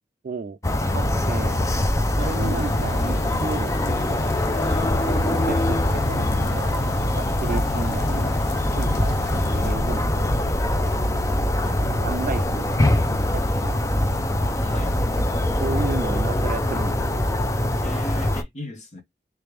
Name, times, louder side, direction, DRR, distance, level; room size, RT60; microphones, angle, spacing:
voice 1, 0.2-0.6 0.9-1.6 2.2-4.2 5.0-6.8 7.2-8.4 8.8-9.1 9.4-11.1 11.8-14.4 15.6-17.3, right 4 dB, 45° right, 0.3 m, -33 dB
sound 1, 0.6-18.4, left 1 dB, 15° left, 0.5 m, -23 dB
sound 2, 2.3-9.7, left 2 dB, 65° left, 0.7 m, -36 dB
voice 2, 4.6-4.9 8.9-9.5 11.6-11.9 14.6-15.0 17.8-19.0, left 1 dB, 40° left, 1.2 m, -39 dB
3.3 x 3.2 x 3.3 m
head